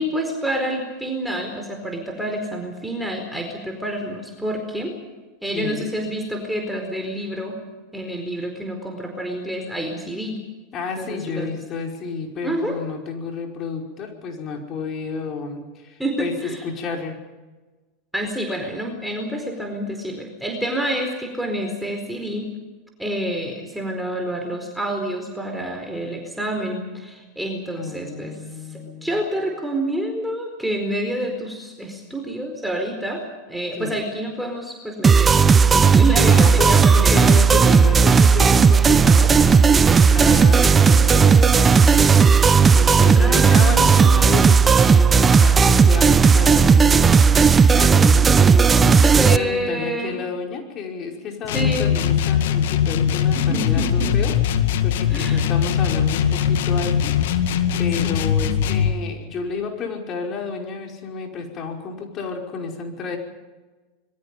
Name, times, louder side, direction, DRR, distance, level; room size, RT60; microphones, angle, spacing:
voice 1, 0.0-5.0 5.4-7.6 7.9-10.4 11.0-11.5 12.4-12.8 16.0-16.6 18.1-22.5 23.0-28.3 28.7-37.4 43.1-44.3 47.8-50.2 51.5-51.9 53.3-54.1 55.1-55.5 57.8-58.3, right 1 dB, 5° right, 2 dB, 4.5 m, -28 dB
voice 2, 5.5-5.9 10.7-17.2 27.8-29.2 33.7-33.9 36.3-48.3 48.7-63.2, left 5 dB, 40° left, 1 dB, 5.3 m, -31 dB
sound 1, 35.0-49.4, right 5 dB, 20° right, 0.9 m, -14 dB
sound 2, 51.4-59.0, left 8 dB, 65° left, 2.0 m, -21 dB
26.5 x 22.5 x 5.4 m, 1.2 s
hypercardioid pair, 85°, 0 cm